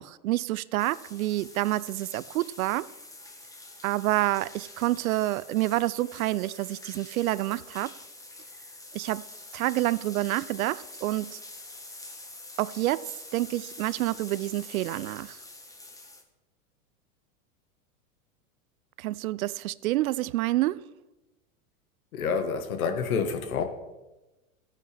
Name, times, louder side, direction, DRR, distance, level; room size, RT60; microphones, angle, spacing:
voice 1, 0.0-2.9 3.8-7.9 8.9-9.3 9.5-11.4 12.6-15.4 19.0-20.8, right 16 dB, 80° right, 0.5 m, -28 dB
sound 1, 0.8-16.2, left 2 dB, 10° left, 1.1 m, -46 dB
voice 2, 22.1-23.6, left 5 dB, 80° left, 1.4 m, -28 dB
14.0 x 9.2 x 3.3 m
hypercardioid pair, 110°, 42 cm